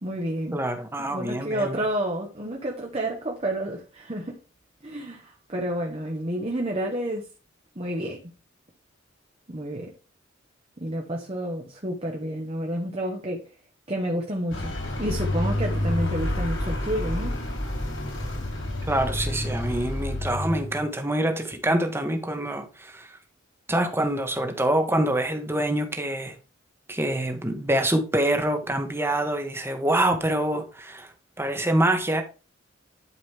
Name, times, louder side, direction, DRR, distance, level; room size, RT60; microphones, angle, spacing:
voice 1, 0.0-0.6 1.0-4.4 4.8-7.3 7.7-8.2 9.5-9.9 10.8-13.4 13.9-14.7 15.0-17.4, right 1 dB, 30° right, 1.3 m, -30 dB
voice 2, 0.5-1.8 18.9-23.1 23.7-26.3 26.9-31.1 31.4-32.2, right 1 dB, 10° right, 1.4 m, -25 dB
Vehicle, 14.5-20.9, left 1 dB, 85° left, 4.5 m, -29 dB
11.0 x 5.2 x 3.5 m
head